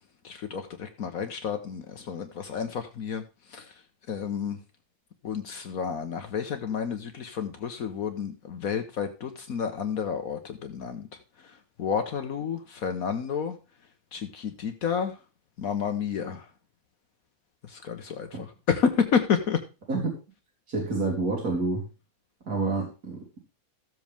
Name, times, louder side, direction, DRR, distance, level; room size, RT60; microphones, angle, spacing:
voice 1, 0.2-3.2 3.5-3.6 4.1-4.6 5.2-11.1 11.8-13.6 14.1-15.1 15.6-16.4 17.7-19.6, left 6 dB, 70° left, 7 dB, 1.5 m, -30 dB
voice 2, 20.7-21.8 22.5-23.4, right 3 dB, 90° right, -1 dB, 3.2 m, -28 dB
14.5 x 7.8 x 3.5 m, 0.31 s
omnidirectional pair, 1.6 m